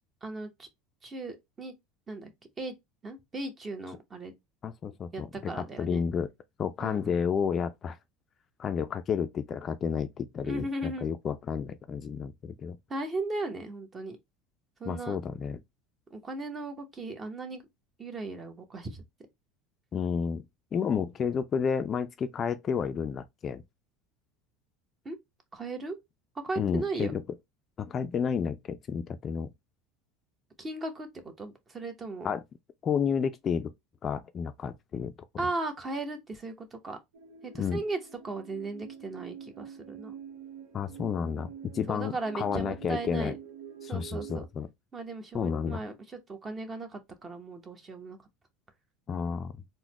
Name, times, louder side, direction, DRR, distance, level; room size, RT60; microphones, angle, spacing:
voice 1, 0.2-0.7 1.0-1.7 2.1-2.3 2.6-2.7 3.0-4.3 5.1-6.0 6.8-7.1 10.4-11.1 12.9-14.2 14.8-15.2 16.1-17.6 18.0-19.0 25.0-25.2 25.5-26.0 26.4-27.1 30.6-32.3 35.4-37.0 37.4-38.0 38.2-40.1 41.9-43.4 43.9-44.4 44.9-48.2, right 2 dB, 25° right, 0.9 m, -37 dB
voice 2, 4.6-6.3 6.6-8.0 8.6-12.8 14.9-15.6 19.9-20.4 20.7-23.6 26.6-27.2 27.8-29.5 32.2-32.4 32.8-33.7 34.0-35.1 37.6-37.8 40.7-43.3 43.8-44.7 45.3-45.8 49.1-49.5, left 6 dB, 35° left, 0.3 m, -31 dB
sound 1, 37.1-44.5, right 8 dB, 85° right, 0.6 m, -46 dB
3.9 x 2.1 x 2.9 m
supercardioid pair, 105°, 0 cm